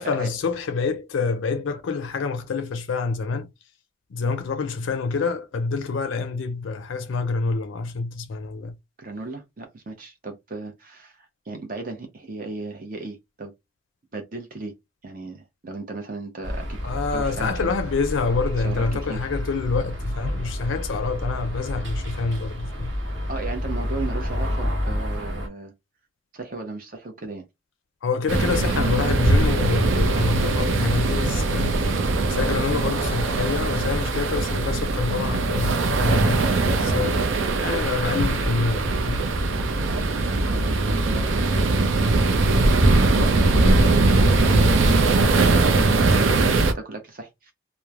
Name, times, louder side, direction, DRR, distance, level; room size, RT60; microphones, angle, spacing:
voice 1, 0.0-3.5 4.1-8.8 16.8-22.9 28.0-32.0 32.3-36.5 36.8-37.2 37.6-39.3, left 4 dB, 80° left, 0.4 m, -27 dB
voice 2, 9.0-13.5 14.1-14.7 15.0-16.8 17.1-17.7 18.6-18.8 19.1-19.2 23.3-25.7 26.3-27.4 36.8-37.0 39.9-47.5, right 3 dB, 45° right, 0.7 m, -36 dB
sound 1, 16.4-25.5, equal, 65° right, 1.0 m, -29 dB
sound 2, 28.3-46.7, right 2 dB, 85° right, 0.5 m, -21 dB
3.0 x 2.1 x 2.3 m
head